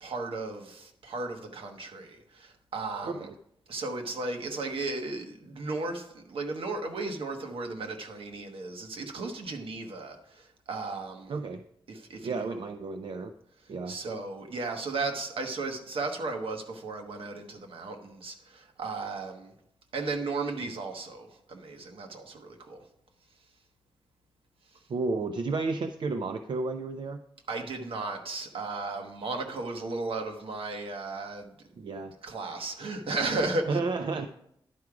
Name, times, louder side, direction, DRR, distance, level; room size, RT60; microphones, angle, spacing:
voice 1, 0.0-3.3 3.7-11.3 11.9-12.7 13.9-19.5 19.9-22.8 27.5-31.5 32.2-33.8, right 3 dB, 80° right, 4 dB, 1.1 m, -35 dB
voice 2, 3.0-3.3 11.3-11.6 12.2-13.3 13.7-14.0 24.9-27.2 31.8-32.1 33.7-34.3, right 3 dB, 60° right, 8 dB, 0.4 m, -32 dB
10.5 x 4.8 x 4.8 m, 0.74 s
wide cardioid pair, 120°, 9 cm